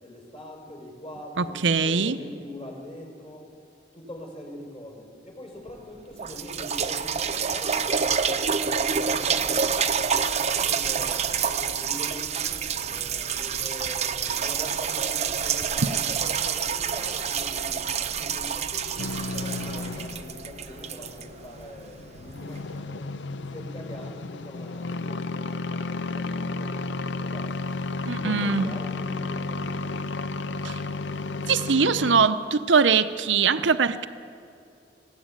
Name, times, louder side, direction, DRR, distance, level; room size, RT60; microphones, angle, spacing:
voice 1, 0.0-3.5 3.9-9.9 10.3-12.5 12.9-27.7 28.1-30.2, left 1 dB, 30° left, 1 dB, 5.1 m, -43 dB
voice 2, 1.4-2.2 28.1-28.7 30.6-30.8 31.5-34.1, right 5 dB, 80° right, 11 dB, 0.8 m, -22 dB
sound 1, 5.7-5.8 6.2-21.9 22.6-22.7, right 6 dB, 40° right, 0.8 m, -27 dB
sound 2, 19.0-32.3, left 3 dB, 70° left, 0.6 m, -33 dB
20.0 x 17.0 x 9.0 m, 2.6 s
head